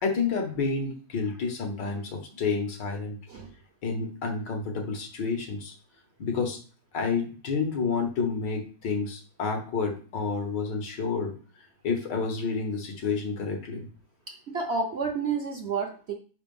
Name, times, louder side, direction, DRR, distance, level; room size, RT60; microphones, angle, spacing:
voice 1, 0.0-3.2 3.8-5.7 6.2-6.6 6.9-11.3 11.8-13.9, left 4 dB, 85° left, 3 dB, 2.0 m, -29 dB
voice 2, 14.3-16.1, right 4 dB, 60° right, 3 dB, 0.7 m, -30 dB
5.2 x 4.4 x 5.4 m, 0.40 s
omnidirectional pair, 1.9 m